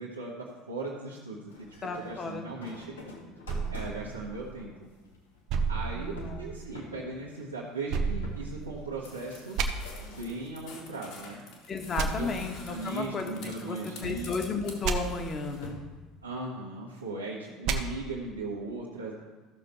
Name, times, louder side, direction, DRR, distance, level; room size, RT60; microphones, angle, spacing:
voice 1, 0.0-1.7 2.0-3.0 3.7-4.9 5.7-9.6 10.0-11.4 12.2-12.4 12.7-14.3 16.2-19.1, right 3 dB, 85° right, -7 dB, 1.4 m, -38 dB
sound 1, 1.5-10.6 11.0-11.7 12.4-13.5 14.0-16.1, left 2 dB, 80° left, 1.7 m, -47 dB
voice 2, 1.8-2.7 3.0-3.3 5.9-6.6 11.7-15.8, left 4 dB, 35° left, 4 dB, 1.7 m, -34 dB
sound 2, 3.5-4.9 5.5-6.7 7.9-9.0 9.5-9.7 11.9-12.1 14.8-15.0 17.6-17.8, right 5 dB, 55° right, 1.0 m, -31 dB
sound 3, 9.0-15.7, left 4 dB, 60° left, 2.5 m, -49 dB
14.0 x 6.8 x 4.5 m, 1.3 s
figure-of-eight pair, 65°, 0 cm